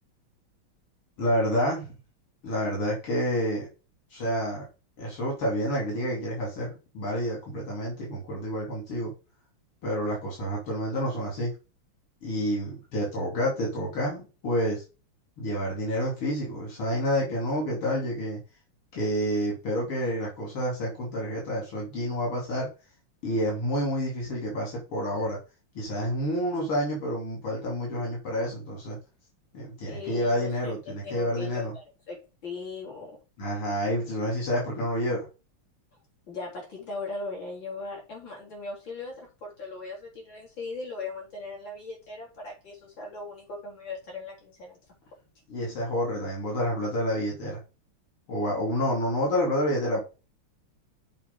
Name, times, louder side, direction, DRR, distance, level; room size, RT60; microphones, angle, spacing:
voice 1, 1.2-1.9 2.4-3.7 4.1-4.7 5.0-9.1 9.8-11.5 12.2-14.8 15.4-18.4 18.9-22.7 23.2-25.4 25.8-29.0 29.5-31.7 33.4-35.3 45.5-47.6 48.3-50.0, equal, 85° left, 3.8 m, -29 dB
voice 2, 29.9-33.2 36.3-44.8, left 3 dB, 55° left, 4.7 m, -38 dB
7.4 x 5.3 x 5.4 m
omnidirectional pair, 2.4 m